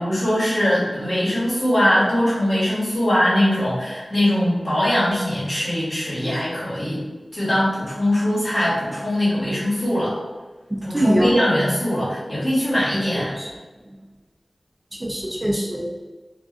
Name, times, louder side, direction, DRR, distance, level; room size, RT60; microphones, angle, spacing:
voice 1, 0.0-7.0 7.3-10.1 10.8-13.4, left 1 dB, 50° left, -9 dB, 1.2 m, -21 dB
voice 2, 10.7-11.3 13.1-13.5 14.9-16.0, right 1 dB, 25° right, -2 dB, 0.4 m, -23 dB
2.4 x 2.2 x 2.4 m, 1.3 s
wide cardioid pair, 55°, 0 cm